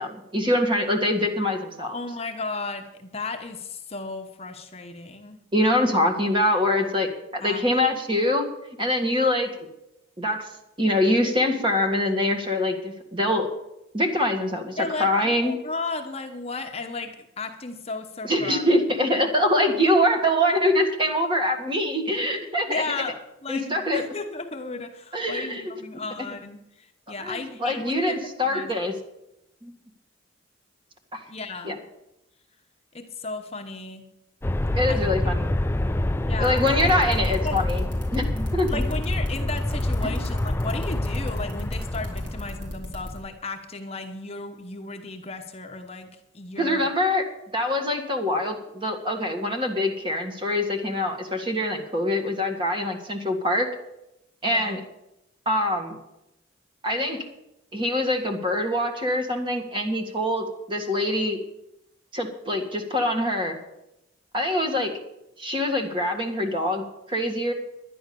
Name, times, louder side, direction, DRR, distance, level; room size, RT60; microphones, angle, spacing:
voice 1, 0.0-2.0 5.5-8.5 8.8-9.5 10.2-10.5 10.8-13.5 13.9-15.5 18.2-22.8 23.5-24.0 25.1-25.7 27.2-28.9 29.6-29.7 31.1-31.2 31.6-31.8 34.7-35.6 36.4-37.8 38.1-38.8 40.0-40.2 46.6-47.2 47.5-53.7 54.4-54.8 55.5-56.0 56.8-57.2 57.7-61.4 62.1-63.6 64.3-64.9 65.4-67.5, left 1 dB, 25° right, 4 dB, 1.8 m, -24 dB
voice 2, 1.9-5.4 7.4-7.6 14.8-18.6 19.7-19.8 22.7-28.2 28.5-28.9 31.3-31.8 32.9-34.0 34.9-35.0 36.2-37.2 37.4-37.6 38.7-46.9 54.4-54.8, left 3 dB, 30° left, 5 dB, 1.0 m, -34 dB
Aircraft, 34.4-42.8, left 1 dB, 10° left, 0.3 m, -26 dB
sound 1, 36.4-43.2, left 1 dB, 65° right, 4.1 m, -36 dB
11.0 x 10.5 x 6.9 m, 0.87 s
head